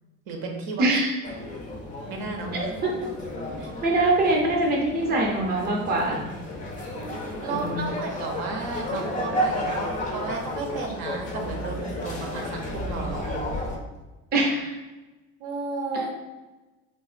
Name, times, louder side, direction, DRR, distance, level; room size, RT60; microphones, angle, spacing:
voice 1, 0.3-0.8 2.1-2.8 3.6-3.7 7.0-9.8 10.1-13.5 15.4-16.1, right 3 dB, 75° right, 2 dB, 0.7 m, -33 dB
voice 2, 0.8-1.1 3.8-6.2 7.5-7.9 14.3-14.8 15.9-16.0, right 2 dB, 25° right, -1 dB, 0.5 m, -23 dB
sound 1, 1.2-13.8, equal, 25° left, 0.3 m, -32 dB
3.6 x 2.4 x 2.4 m, 1.1 s
cardioid pair, 160°, 35 cm